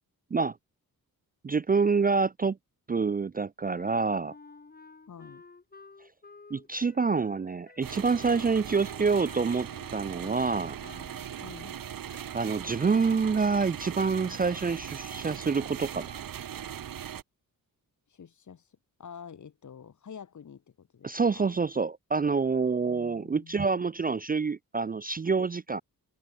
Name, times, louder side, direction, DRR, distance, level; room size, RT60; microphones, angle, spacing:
voice 1, 1.4-2.6 2.9-4.3 6.5-10.8 12.3-16.2 21.0-25.8, right 4 dB, 25° right, 0.4 m, -27 dB
Wind instrument woodwind instrument, 3.7-10.5 10.8-11.3, left 3 dB, 25° left, 2.3 m, -51 dB
voice 2, 5.1-5.4 11.4-11.8 18.1-21.6 22.8-23.8, left 7 dB, 55° left, 1.9 m, -48 dB
sound 1, 7.8-17.2, right 9 dB, 70° right, 1.2 m, -39 dB
wide cardioid pair, 135°, 35 cm